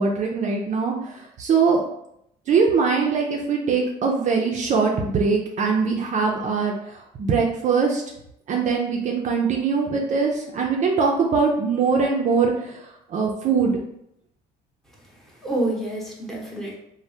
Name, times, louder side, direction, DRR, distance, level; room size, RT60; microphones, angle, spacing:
voice 1, 0.0-1.8 2.5-8.0 8.5-13.8, right 5 dB, 45° right, 0 dB, 0.4 m, -22 dB
voice 2, 14.9-16.8, right 1 dB, ahead, -3 dB, 0.8 m, -29 dB
3.2 x 2.1 x 2.6 m, 0.76 s
cardioid pair, 110°, 17 cm